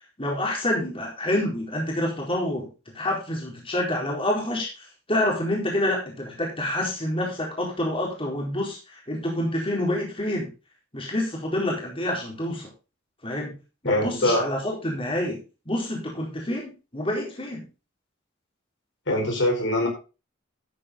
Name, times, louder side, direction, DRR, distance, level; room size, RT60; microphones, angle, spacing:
voice 1, 0.2-2.7 2.9-10.5 10.9-12.7 13.2-13.5 13.8-17.7, left 1 dB, 30° left, -1 dB, 4.3 m, -27 dB
voice 2, 13.8-14.5 19.1-19.9, left 1 dB, 65° left, 2 dB, 4.9 m, -23 dB
12.5 x 8.7 x 3.8 m, 0.30 s
head